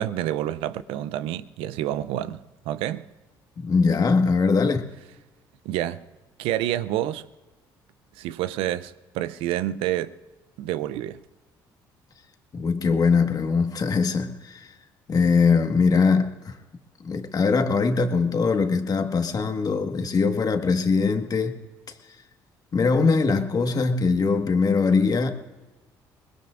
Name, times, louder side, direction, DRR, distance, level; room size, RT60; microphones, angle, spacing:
voice 1, 0.0-3.1 5.6-6.1 6.4-7.3 8.2-10.2 10.6-11.2, right 13 dB, 80° right, 0.5 m, -28 dB
voice 2, 3.6-4.8 12.5-14.7 15.1-16.6 17.0-21.6 22.7-25.3, left 4 dB, 45° left, 1.6 m, -22 dB
23.5 x 20.5 x 2.5 m
supercardioid pair, 70°, 9 cm